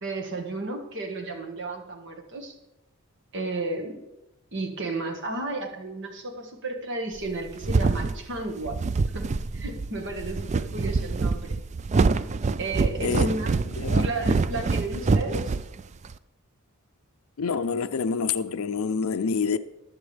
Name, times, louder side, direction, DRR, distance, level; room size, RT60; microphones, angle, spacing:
voice 1, 0.0-2.5 3.3-4.0 4.5-8.8 9.1-9.3 9.5-11.6 12.6-13.5 13.9-15.5, right 2 dB, 55° right, 1.6 m, -33 dB
sound 1, 7.2-16.2, right 4 dB, 30° right, 0.3 m, -25 dB
voice 2, 13.8-14.4 17.4-19.6, left 5 dB, 70° left, 0.5 m, -27 dB
20.0 x 7.1 x 3.4 m
head